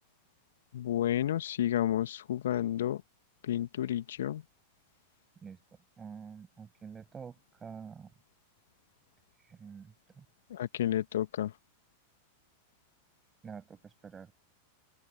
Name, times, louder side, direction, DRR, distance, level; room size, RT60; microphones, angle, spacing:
voice 1, 0.7-3.0 3.5-4.4 10.5-11.5, left 11 dB, 60° left, 2.1 m, -31 dB
voice 2, 6.0-7.3 7.6-8.1 9.4-10.2 13.4-14.3, right 6 dB, 20° right, 7.2 m, -47 dB
open air
figure-of-eight pair, 90°, 0 cm